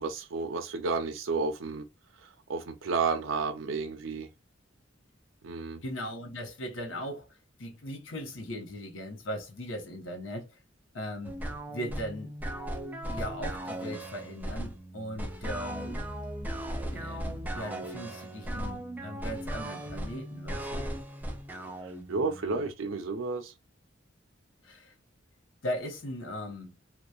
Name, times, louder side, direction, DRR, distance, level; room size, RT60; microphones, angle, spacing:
voice 1, 0.0-1.8 2.5-4.3 5.4-5.8 21.8-23.5, right 4 dB, 90° right, 0.5 m, -31 dB
voice 2, 5.8-10.6 10.9-11.4 11.7-12.3 13.0-16.0 16.9-20.9 24.6-24.9 25.6-26.8, equal, 80° left, 0.8 m, -38 dB
sound 1, 11.2-22.7, right 1 dB, 10° right, 0.4 m, -37 dB
2.8 x 2.2 x 2.2 m
head